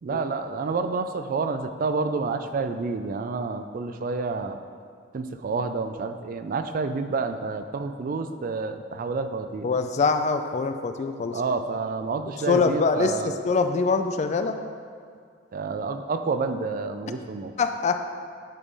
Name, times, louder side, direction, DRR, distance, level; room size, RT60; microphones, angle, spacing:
voice 1, 0.0-4.6 5.1-9.7 11.3-13.3 15.5-17.5, right 4 dB, 45° right, 9 dB, 0.3 m, -29 dB
voice 2, 9.6-11.4 12.5-14.6 17.6-18.2, left 4 dB, 35° left, 8 dB, 0.3 m, -24 dB
9.8 x 3.7 x 4.0 m, 2.2 s
head